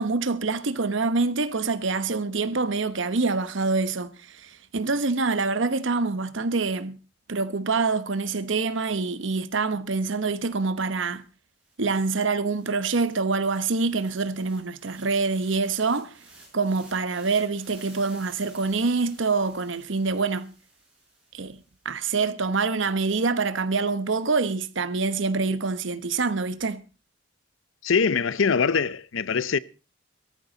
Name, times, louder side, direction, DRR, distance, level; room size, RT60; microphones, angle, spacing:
voice 1, 0.0-7.0 7.3-11.2 11.8-16.2 16.5-20.5 21.3-21.6 21.8-26.8, right 4 dB, 75° right, 1.0 m, -26 dB
sound 1, 11.2-11.3 11.6-21.9, right 2 dB, 5° right, 6.3 m, -54 dB
voice 2, 27.8-29.6, left 5 dB, 80° left, 0.6 m, -23 dB
17.5 x 14.0 x 4.0 m
head